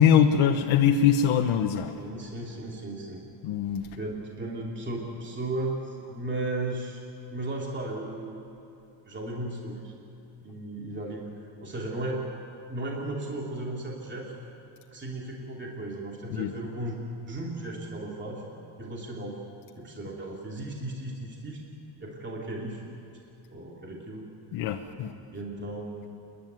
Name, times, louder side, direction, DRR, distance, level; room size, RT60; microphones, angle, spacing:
voice 1, 0.0-1.9 3.4-3.9 16.3-16.5 24.5-25.1, left 8 dB, 85° left, 3 dB, 1.1 m, -22 dB
voice 2, 2.0-3.3 3.9-7.0 7.3-8.4 9.0-9.9 10.4-11.2 11.6-12.2 12.7-14.3 14.9-17.0 17.3-18.4 18.8-19.4 19.8-21.6 22.0-22.8 23.5-24.3 25.3-26.1, right 2 dB, 25° right, -2 dB, 2.8 m, -35 dB
28.5 x 11.5 x 9.3 m, 2.8 s
cardioid pair, 130°, 48 cm